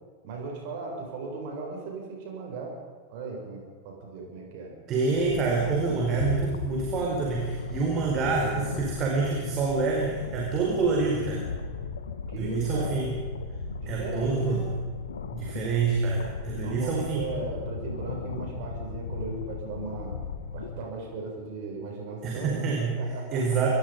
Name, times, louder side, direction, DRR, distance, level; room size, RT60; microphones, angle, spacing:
voice 1, 0.2-2.8 3.1-4.7 8.2-9.0 12.3-13.1 13.8-14.6 16.6-20.2 20.5-23.6, right 3 dB, 50° right, 0 dB, 7.2 m, -37 dB
voice 2, 4.9-11.4 12.4-13.1 13.9-14.7 15.3-17.2 22.2-23.0 23.3-23.7, right 4 dB, 35° right, -1 dB, 4.8 m, -27 dB
sound 1, 5.1-20.9, left 5 dB, 70° left, 1.8 m, -37 dB
25.0 x 21.5 x 5.4 m, 1.5 s
figure-of-eight pair, 90°, 0 cm